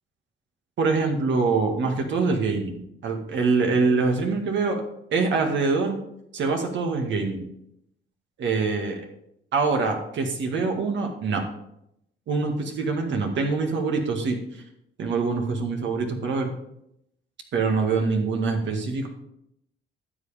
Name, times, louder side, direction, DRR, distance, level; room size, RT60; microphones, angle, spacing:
voice 1, 0.8-4.8 5.1-6.0 6.3-7.5 8.4-9.0 9.5-11.4 12.3-14.4 15.0-16.5 17.5-19.1, right 4 dB, 70° right, 3 dB, 1.9 m, -24 dB
12.0 x 7.7 x 3.5 m, 0.77 s
cardioid pair, 90°, 20 cm